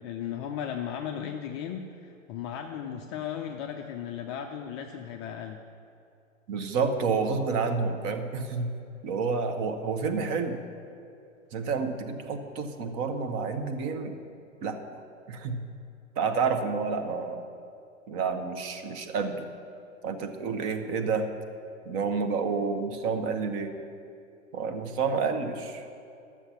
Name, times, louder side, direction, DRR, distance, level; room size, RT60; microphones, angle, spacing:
voice 1, 0.0-5.6, left 9 dB, 25° left, 3 dB, 0.4 m, -36 dB
voice 2, 6.5-8.7 9.0-10.6 11.5-14.2 14.6-15.0 15.3-15.6 16.2-17.4 18.1-19.5 20.0-21.3 21.8-23.7 24.5-25.8, right 5 dB, 35° right, 7 dB, 1.0 m, -29 dB
12.5 x 7.3 x 5.8 m, 2.5 s
figure-of-eight pair, 105°, 40 cm